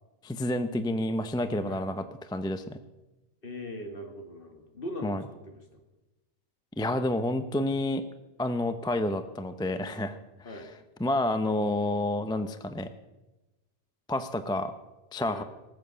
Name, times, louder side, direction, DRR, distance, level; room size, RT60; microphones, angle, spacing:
voice 1, 0.2-2.8 5.0-5.2 6.8-8.0 8.4-10.5 11.0-12.9 14.1-14.7 15.1-15.4, left 1 dB, 5° left, 10 dB, 0.5 m, -29 dB
voice 2, 3.4-5.8 10.4-10.7 15.3-15.4, left 1 dB, 50° left, 4 dB, 2.1 m, -40 dB
19.0 x 7.7 x 6.8 m, 1.0 s
omnidirectional pair, 1.2 m